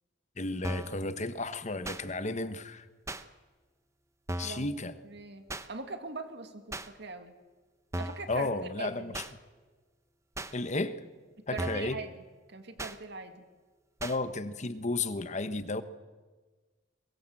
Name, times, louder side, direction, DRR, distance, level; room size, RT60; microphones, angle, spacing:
voice 1, 0.4-2.9 4.4-4.9 8.3-9.2 10.5-11.0 11.5-12.0 14.0-15.8, left 2 dB, 40° left, 12 dB, 1.2 m, -33 dB
sound 1, 0.6-1.0 1.8-2.0 3.1-3.2 4.3-4.6 5.5-5.7 6.7-6.9 7.9-8.3 9.1-9.3 10.4-10.5 11.6-11.9 12.8-13.0 14.0-14.2, right 1 dB, 15° right, 0.9 m, -37 dB
voice 2, 5.0-7.3 8.0-8.5 8.8-9.2 11.4-12.1 12.5-13.4, right 3 dB, 60° right, 7 dB, 2.3 m, -41 dB
23.5 x 20.5 x 7.8 m, 1.4 s
head